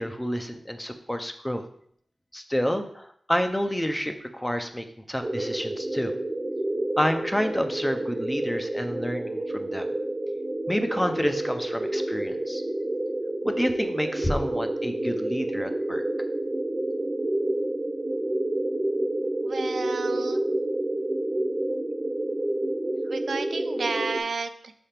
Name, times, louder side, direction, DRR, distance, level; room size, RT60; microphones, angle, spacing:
voice 1, 0.0-1.6 2.3-6.1 7.0-9.8 10.7-12.6 13.4-16.0, equal, 10° left, 6 dB, 0.5 m, -29 dB
sound 1, 5.2-24.2, right 1 dB, 30° right, 0.8 m, -29 dB
voice 2, 19.4-20.4 23.1-24.7, right 4 dB, 70° right, 9 dB, 0.4 m, -32 dB
5.6 x 3.4 x 5.7 m, 0.63 s
wide cardioid pair, 115°, 0 cm